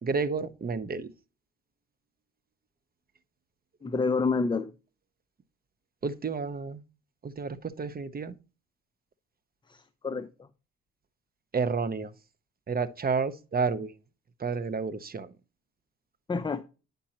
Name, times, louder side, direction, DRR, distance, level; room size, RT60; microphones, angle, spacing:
voice 1, 0.0-1.1 6.0-6.8 7.2-8.3 11.5-12.1 12.7-13.9 14.4-15.3, right 5 dB, 30° right, 0.8 m, -30 dB
voice 2, 3.8-4.7 9.7-10.3 16.3-16.7, left 4 dB, 15° left, 0.6 m, -28 dB
9.8 x 5.3 x 2.9 m
cardioid pair, 90°, 30 cm